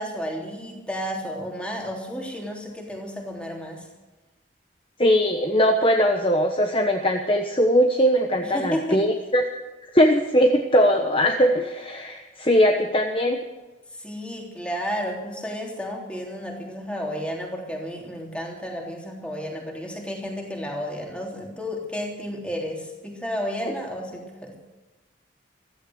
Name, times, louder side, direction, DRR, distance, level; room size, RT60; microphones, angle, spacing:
voice 1, 0.0-3.8 8.4-9.0 14.0-24.6, equal, 5° left, 0 dB, 3.3 m, -32 dB
voice 2, 5.0-9.5 9.9-13.4 23.6-23.7, equal, 30° left, 4 dB, 1.1 m, -20 dB
16.0 x 14.0 x 6.4 m, 1.2 s
head